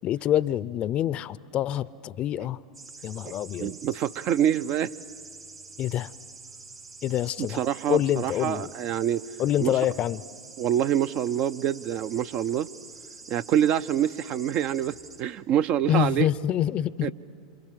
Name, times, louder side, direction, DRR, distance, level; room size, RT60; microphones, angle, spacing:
voice 1, 0.0-2.6 3.0-3.7 5.8-6.1 7.0-7.6 7.9-8.7 9.4-10.2 15.9-17.1, left 11 dB, 40° left, 0.6 m, -26 dB
sound 1, 2.7-15.2, right 4 dB, 90° right, 3.4 m, -46 dB
voice 2, 3.6-4.9 7.6-9.2 9.6-9.7 10.6-12.7 13.3-16.3 17.0-17.1, right 10 dB, 45° right, 0.6 m, -26 dB
27.5 x 27.5 x 7.6 m
hypercardioid pair, 100°, 3 cm